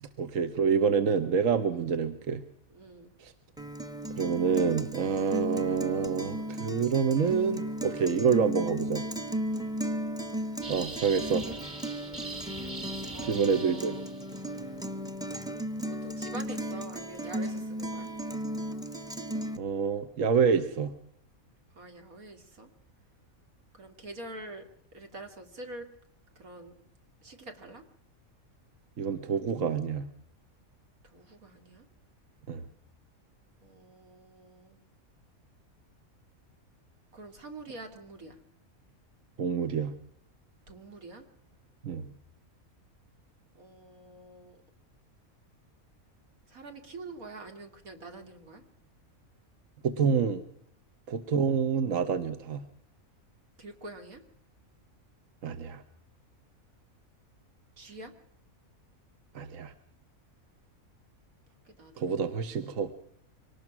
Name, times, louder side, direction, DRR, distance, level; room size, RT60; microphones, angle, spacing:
voice 1, 0.0-2.4 3.2-3.3 4.1-9.0 10.7-11.4 13.2-13.9 19.6-20.9 29.0-30.1 32.5-32.6 39.4-39.9 41.8-42.1 49.8-50.4 51.1-52.6 55.4-55.8 59.3-59.7 62.0-62.9, right 6 dB, 70° right, 9 dB, 1.4 m, -27 dB
voice 2, 2.7-3.2 9.5-9.8 12.0-12.2 13.1-14.0 15.9-18.1 21.7-22.7 23.7-24.7 24.9-25.9 26.4-26.8 27.2-27.8 31.0-31.8 33.6-34.8 37.1-38.4 40.7-41.3 43.5-44.6 46.5-48.6 53.6-54.2 57.8-58.1 61.6-62.3, right 2 dB, 85° right, 5 dB, 2.9 m, -46 dB
Guitar, 3.6-19.6, right 1 dB, 5° right, 0.7 m, -35 dB
sound 1, 10.6-14.3, right 2 dB, 30° right, 2.8 m, -42 dB
24.5 x 19.0 x 6.0 m, 0.69 s
omnidirectional pair, 1.5 m